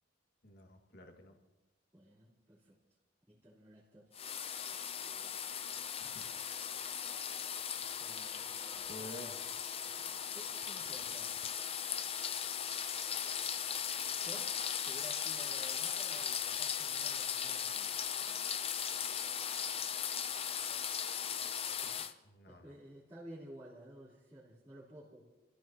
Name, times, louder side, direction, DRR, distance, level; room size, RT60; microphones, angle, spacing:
voice 1, 0.4-1.4 6.0-6.3 8.9-9.4 22.2-22.8, left 1 dB, 50° left, 3 dB, 2.1 m, -51 dB
voice 2, 1.9-2.8 3.3-4.1 8.0-9.4 9.9-11.3 14.2-18.5 21.8-22.2 22.5-25.2, right 1 dB, 15° right, -12 dB, 3.6 m, -54 dB
sound 1, 4.1-22.1, left 8 dB, 30° left, 0.6 m, -38 dB
29.5 x 15.5 x 3.0 m, 1.1 s
head